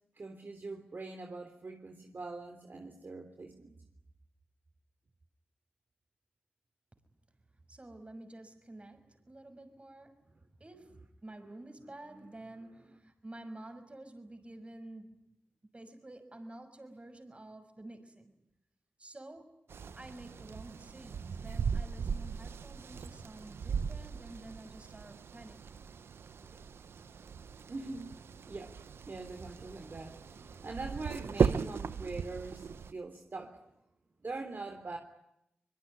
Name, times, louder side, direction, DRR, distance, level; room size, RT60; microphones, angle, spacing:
voice 1, 0.2-3.7 12.1-13.0 26.5-26.6 27.7-28.1 28.4-28.7 29.1-33.6 34.2-35.0, right 3 dB, 55° right, 4 dB, 3.4 m, -43 dB
voice 2, 7.7-15.3 15.7-18.3 19.0-19.6 19.9-25.8, right 1 dB, 30° right, 9 dB, 6.2 m, -50 dB
sound 1, 19.7-32.9, right 6 dB, 90° right, 1.0 m, -37 dB
24.5 x 22.5 x 9.9 m, 0.83 s
cardioid pair, 55°, 4 cm